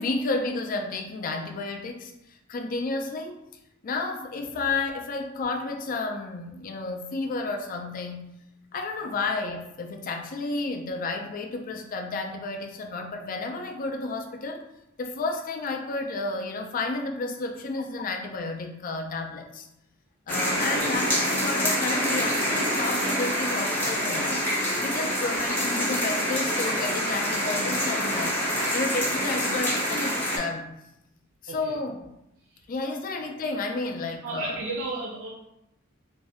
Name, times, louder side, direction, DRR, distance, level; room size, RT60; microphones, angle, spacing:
voice 1, 0.0-3.4 3.8-8.3 8.7-14.6 15.0-19.7 20.3-24.5 24.8-28.4 28.7-30.7 31.4-32.1 32.7-34.6, left 3 dB, 45° left, 4 dB, 0.4 m, -31 dB
sound 1, 20.3-30.4, equal, 10° left, 0.7 m, -26 dB
voice 2, 20.5-20.9 24.9-25.0 31.5-31.7 32.5-32.9 34.2-35.3, right 3 dB, 75° right, -3 dB, 0.5 m, -35 dB
2.6 x 2.1 x 3.4 m, 0.85 s
head